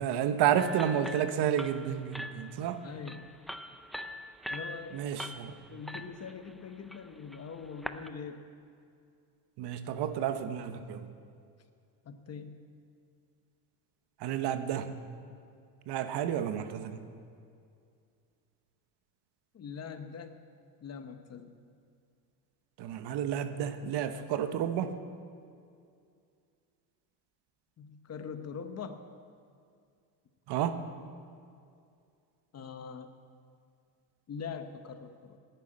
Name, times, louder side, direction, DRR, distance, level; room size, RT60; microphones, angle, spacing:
voice 1, 0.0-2.8 4.9-5.6 9.6-11.1 14.2-15.0 15.9-17.0 22.8-24.9 30.5-30.8, right 9 dB, 60° right, 9 dB, 1.1 m, -31 dB
sound 1, 0.6-8.1, equal, ahead, 0.4 m, -43 dB
voice 2, 2.8-3.3 4.5-5.0 5.7-8.5 12.0-12.6 19.5-20.4 20.8-21.6 27.8-29.0 32.5-33.1 34.3-35.4, left 6 dB, 35° left, 8 dB, 1.0 m, -43 dB
11.5 x 9.5 x 8.8 m, 2.3 s
cardioid pair, 115°, 46 cm